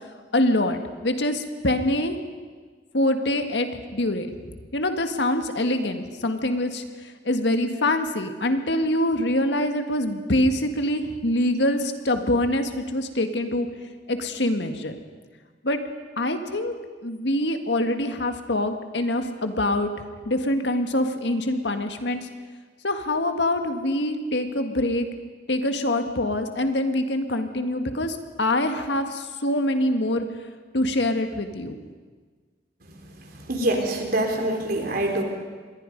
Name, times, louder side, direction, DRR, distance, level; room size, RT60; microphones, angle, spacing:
voice 1, 0.3-2.2 2.9-13.7 14.1-15.0 15.6-15.8 16.2-16.7 17.0-19.9 20.3-22.3 22.8-25.1 25.5-30.2 30.7-31.8, left 1 dB, 80° left, 7 dB, 1.8 m, -25 dB
voice 2, 33.4-35.2, right 1 dB, 55° right, 3 dB, 3.6 m, -25 dB
27.0 x 21.0 x 5.3 m, 1.5 s
head